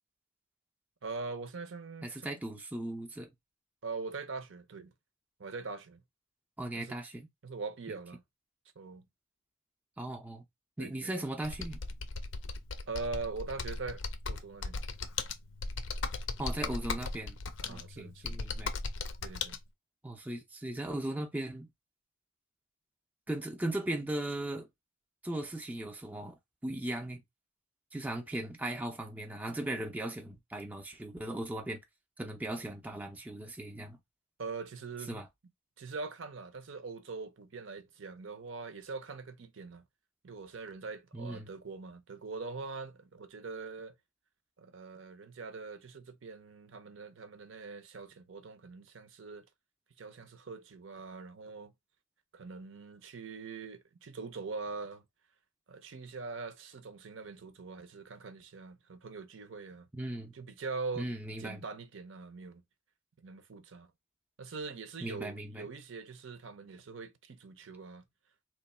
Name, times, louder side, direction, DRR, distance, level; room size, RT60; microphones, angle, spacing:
voice 1, 1.0-2.3 3.8-4.9 5.4-6.0 6.7-7.0 7.4-8.2 8.8-9.1 10.8-11.1 12.9-14.0 14.3-14.8 17.6-18.4 19.2-19.6 34.4-35.2 35.8-39.8 40.2-43.9 44.6-49.5 50.0-51.7 52.3-55.0 55.7-59.9 60.3-61.1 61.4-62.6 63.2-63.9 64.4-68.1, right 4 dB, 65° right, 0.6 m, -42 dB
voice 2, 2.0-3.3 6.6-7.3 10.0-10.4 10.8-11.8 16.4-17.4 17.7-18.7 20.0-21.7 23.3-24.7 25.2-26.4 26.6-27.2 27.9-31.8 32.2-34.0 35.1-35.3 41.1-41.5 59.9-60.3 61.0-61.6 65.0-65.7, right 1 dB, 10° right, 0.4 m, -38 dB
Computer keyboard, 11.4-19.6, left 4 dB, 60° left, 0.5 m, -37 dB
3.0 x 2.2 x 4.1 m
head